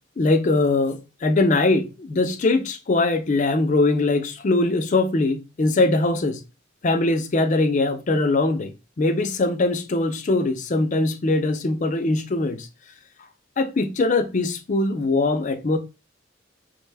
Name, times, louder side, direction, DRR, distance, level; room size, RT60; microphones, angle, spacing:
voice 1, 0.2-6.4 6.8-12.7 13.6-15.8, left 2 dB, 40° left, 0.4 m, -21 dB
3.4 x 2.2 x 3.2 m
head